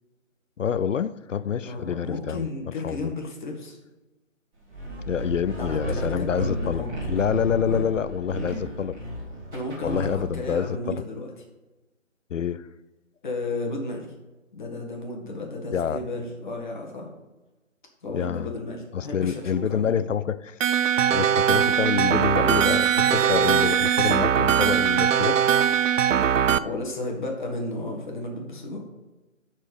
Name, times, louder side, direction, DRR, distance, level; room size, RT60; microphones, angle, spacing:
voice 1, 0.6-3.0 5.1-9.0 9.8-11.0 12.3-12.7 15.7-16.0 18.1-18.5 18.9-20.6 21.1-25.4, left 8 dB, 70° left, 0.6 m, -27 dB
voice 2, 1.6-3.8 5.6-6.9 9.5-11.3 13.2-14.1 14.5-17.1 18.0-20.0 26.6-28.8, left 2 dB, 35° left, 1.9 m, -33 dB
sound 1, 4.7-10.5, right 1 dB, 10° right, 2.0 m, -33 dB
sound 2, 20.6-26.6, right 8 dB, 70° right, 0.5 m, -21 dB
10.5 x 4.5 x 5.3 m
figure-of-eight pair, 160°, 39 cm